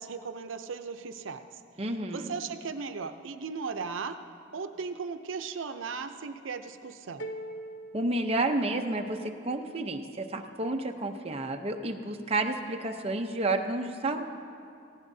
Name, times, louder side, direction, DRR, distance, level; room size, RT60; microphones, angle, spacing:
voice 1, 0.0-1.6 2.1-4.2 4.5-7.3, right 5 dB, 90° right, 8 dB, 0.6 m, -37 dB
voice 2, 1.8-2.3 7.9-14.2, right 2 dB, 30° right, 4 dB, 0.7 m, -30 dB
sound 1, 7.2-9.2, right 1 dB, 70° left, 0.8 m, -42 dB
18.5 x 16.0 x 2.7 m, 2.4 s
head